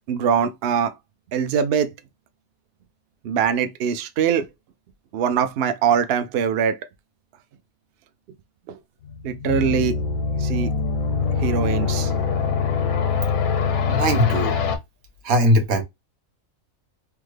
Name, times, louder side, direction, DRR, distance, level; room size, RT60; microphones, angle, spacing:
voice 1, 0.1-0.9 1.3-1.9 3.2-4.5 5.1-6.8 9.2-10.0 10.4-10.7 11.4-12.1, right 7 dB, 65° right, 0.6 m, -22 dB
sound 1, 9.0-14.8, left 5 dB, 85° left, 1.2 m, -23 dB
voice 2, 13.9-14.6 15.2-15.8, equal, 90° right, 1.3 m, -19 dB
3.5 x 2.1 x 3.1 m
omnidirectional pair, 1.4 m